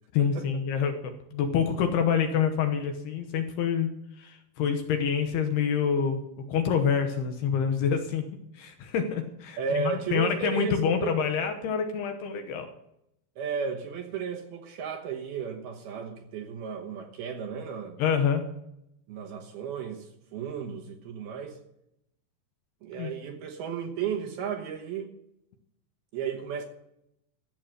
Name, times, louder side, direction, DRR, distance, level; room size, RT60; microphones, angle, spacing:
voice 1, 0.1-8.2 8.5-12.7 18.0-18.4 22.9-23.1, left 7 dB, 70° left, 2.7 m, -27 dB
voice 2, 9.6-11.2 13.4-18.0 19.1-21.6 22.8-25.1 26.1-26.6, right 6 dB, 70° right, 2.7 m, -34 dB
14.0 x 8.3 x 6.4 m
omnidirectional pair, 5.3 m